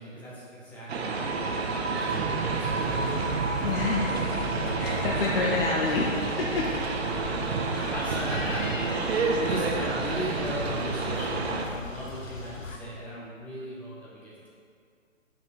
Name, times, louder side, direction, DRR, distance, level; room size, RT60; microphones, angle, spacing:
voice 1, 0.0-3.7 4.9-5.0 7.0-8.7 9.0-14.5, equal, 5° left, -8 dB, 1.1 m, -38 dB
sound 1, 0.9-11.7, right 4 dB, 55° right, 0.9 m, -30 dB
sound 2, 0.9-12.3, right 3 dB, 80° right, 1.3 m, -35 dB
sound 3, 2.8-12.8, left 4 dB, 70° left, 1.0 m, -39 dB
voice 2, 3.6-4.4 4.7-6.7, left 3 dB, 45° left, -2 dB, 0.8 m, -28 dB
5.8 x 5.3 x 5.7 m, 2.2 s
figure-of-eight pair, 135°, 39 cm